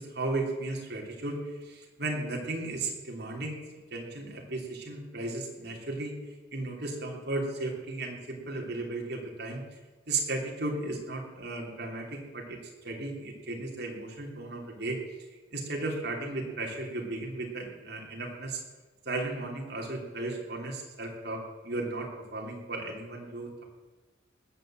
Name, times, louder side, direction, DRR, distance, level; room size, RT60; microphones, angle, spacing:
voice 1, 0.0-3.6 3.9-6.1 6.5-9.6 10.1-12.6 12.8-15.0 15.5-18.6 19.0-23.6, right 2 dB, 60° right, -1 dB, 3.2 m, -35 dB
19.5 x 6.9 x 7.8 m, 1.3 s
head